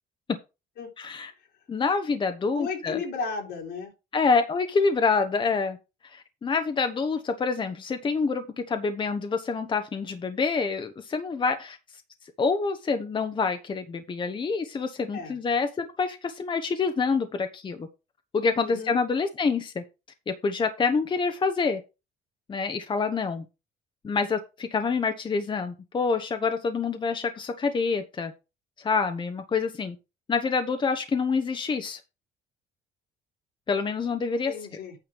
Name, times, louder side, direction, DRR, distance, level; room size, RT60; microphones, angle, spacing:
voice 1, 1.0-1.3 1.7-3.0 4.1-5.8 6.0-11.8 12.4-17.9 18.3-19.8 20.3-21.8 22.5-23.4 24.0-28.3 28.8-30.0 30.3-32.0 33.7-34.5, left 4 dB, 30° left, 1.0 m, -27 dB
voice 2, 2.5-3.9 15.1-15.3 18.6-19.0 34.5-34.9, left 5 dB, 75° left, 3.2 m, -34 dB
9.1 x 4.9 x 5.2 m
cardioid pair, 110°, 17 cm